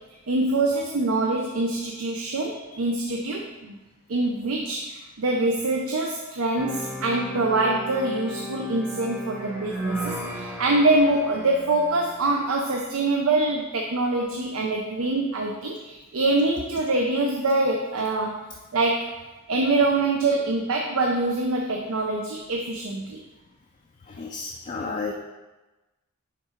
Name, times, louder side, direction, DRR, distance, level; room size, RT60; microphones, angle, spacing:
voice 1, 0.3-3.8 4.1-18.4 18.7-19.2 19.5-23.2, right 2 dB, 75° right, 1 dB, 0.6 m, -24 dB
sound 1, 6.6-12.5, equal, 10° right, 0.9 m, -35 dB
voice 2, 24.1-25.1, left 4 dB, 35° left, -1 dB, 0.4 m, -32 dB
6.0 x 3.6 x 4.4 m, 1.1 s
head